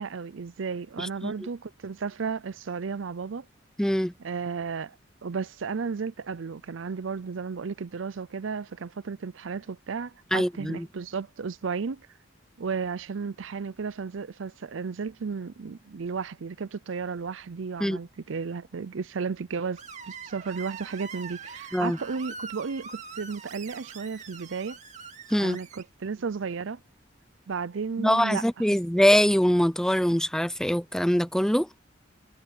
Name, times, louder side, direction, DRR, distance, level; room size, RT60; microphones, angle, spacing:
voice 1, 0.0-3.5 4.2-4.9 5.2-12.1 12.6-24.8 25.4-26.8 27.5-28.4, right 5 dB, 85° right, 0.5 m, -33 dB
voice 2, 1.0-1.3 3.8-4.1 10.3-10.9 17.8-18.0 21.7-22.0 25.3-25.6 28.0-31.7, equal, 5° left, 0.6 m, -23 dB
Screech, 19.8-25.8, right 5 dB, 40° right, 2.2 m, -43 dB
head